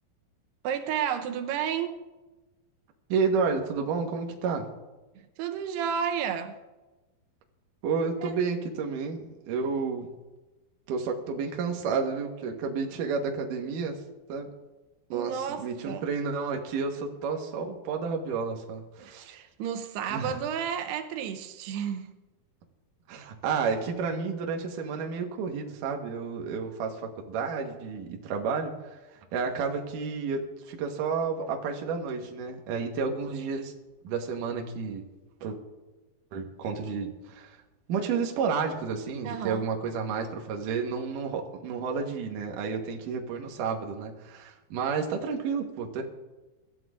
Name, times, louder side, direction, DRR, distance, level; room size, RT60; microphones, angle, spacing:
voice 1, 0.6-2.0 5.4-6.6 8.2-8.4 15.1-16.0 19.0-22.1 39.2-39.7, right 8 dB, 90° right, 3.0 m, -32 dB
voice 2, 3.1-4.7 7.8-10.1 10.9-14.0 14.3-14.5 15.1-19.3 20.1-20.4 23.1-29.0 29.3-33.7 34.0-35.0 35.4-35.6 36.3-37.6 37.9-46.0, right 5 dB, 65° right, 2.6 m, -31 dB
24.5 x 13.5 x 2.5 m
omnidirectional pair, 4.6 m